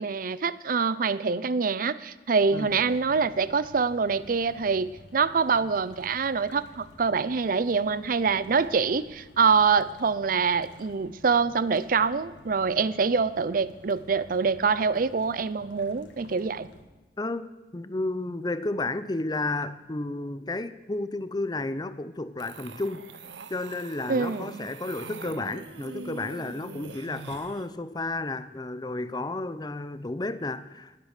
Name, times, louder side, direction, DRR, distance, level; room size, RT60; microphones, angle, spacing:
voice 1, 0.0-16.7 24.1-24.7, right 5 dB, 50° right, 0.5 m, -25 dB
sound 1, 2.4-16.8, left 1 dB, 85° left, 1.9 m, -52 dB
voice 2, 17.2-23.0 23.5-31.0, left 2 dB, 25° left, 0.6 m, -32 dB
sound 2, 22.4-27.7, right 4 dB, 85° right, 0.8 m, -43 dB
19.5 x 8.2 x 6.6 m
head